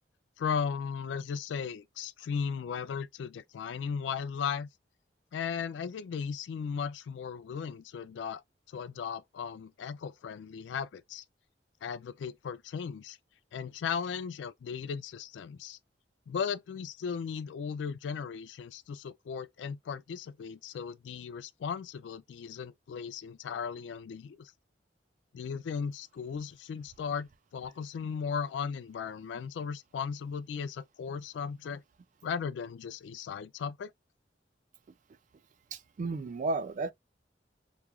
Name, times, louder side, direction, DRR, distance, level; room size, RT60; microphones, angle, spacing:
voice 1, 0.4-4.7 5.3-8.4 8.7-11.2 11.8-13.2 13.5-15.8 16.3-24.5 25.3-31.8 32.2-33.9, left 6 dB, 75° left, 0.3 m, -36 dB
voice 2, 35.7-36.9, right 3 dB, 45° right, 0.3 m, -33 dB
3.0 x 2.3 x 2.2 m
head